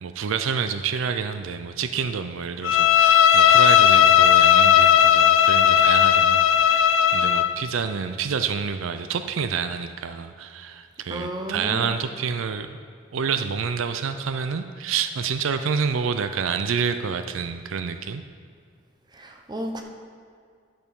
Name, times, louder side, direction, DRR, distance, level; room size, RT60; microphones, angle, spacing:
voice 1, 0.0-12.8 13.1-18.2, right 6 dB, 80° right, 9 dB, 0.4 m, -28 dB
Bowed string instrument, 2.6-7.5, left 9 dB, 75° left, 0.5 m, -16 dB
voice 2, 11.1-12.0 19.1-19.8, right 1 dB, 20° right, 3 dB, 0.8 m, -33 dB
10.5 x 6.6 x 5.4 m, 2.2 s
head